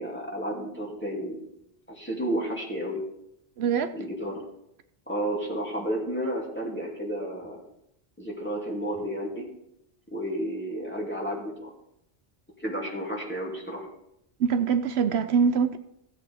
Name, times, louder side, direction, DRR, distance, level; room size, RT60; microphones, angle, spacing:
voice 1, 0.0-1.4 1.9-3.0 3.9-4.5 5.1-7.6 8.2-9.5 10.1-11.7 12.6-13.9, right 1 dB, 10° left, -3 dB, 2.5 m, -32 dB
voice 2, 3.6-3.9 14.4-15.8, right 6 dB, 75° right, 10 dB, 0.8 m, -23 dB
16.0 x 8.1 x 3.5 m, 0.78 s
omnidirectional pair, 1.1 m